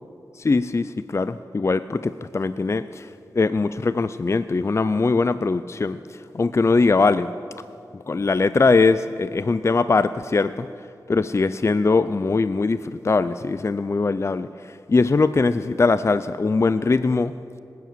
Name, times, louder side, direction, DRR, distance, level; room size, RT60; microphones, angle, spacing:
voice 1, 0.4-3.1 3.3-7.3 7.9-10.7 11.1-17.3, left 3 dB, 35° left, 13 dB, 0.4 m, -21 dB
20.0 x 9.4 x 7.5 m, 2.5 s
wide cardioid pair, 70°, 8 cm